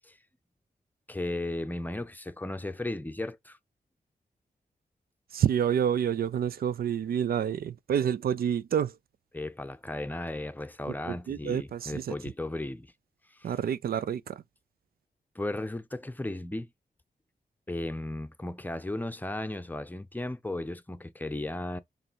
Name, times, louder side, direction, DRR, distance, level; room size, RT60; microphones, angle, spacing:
voice 1, 1.1-3.6 9.3-12.9 13.4-13.5 15.3-16.7 17.7-21.8, left 1 dB, 10° left, 0.6 m, -35 dB
voice 2, 5.3-8.9 11.1-12.1 13.4-14.4, right 9 dB, 75° right, 0.4 m, -28 dB
6.7 x 3.2 x 4.5 m
wide cardioid pair, 100°, 16 cm